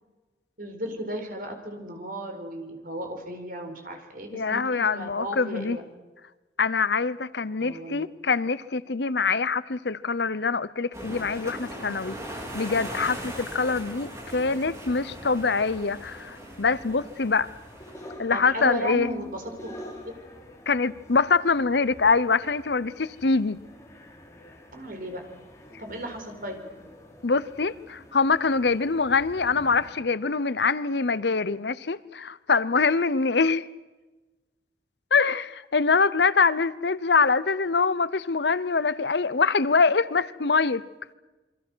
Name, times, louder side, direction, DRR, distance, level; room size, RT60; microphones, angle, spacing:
voice 1, 0.6-5.8 7.6-8.1 14.0-14.5 18.3-19.7 20.0-20.2 24.7-25.3 25.8-26.6, right 1 dB, 50° right, 4.7 m, -35 dB
voice 2, 4.3-5.8 6.6-17.5 18.2-19.1 20.7-23.6 27.2-33.7 35.1-40.8, left 4 dB, 65° left, 0.8 m, -24 dB
sound 1, 10.9-18.1, right 1 dB, 15° right, 4.5 m, -39 dB
sound 2, 12.1-29.9, left 1 dB, 15° left, 3.9 m, -49 dB
28.0 x 24.0 x 6.3 m
head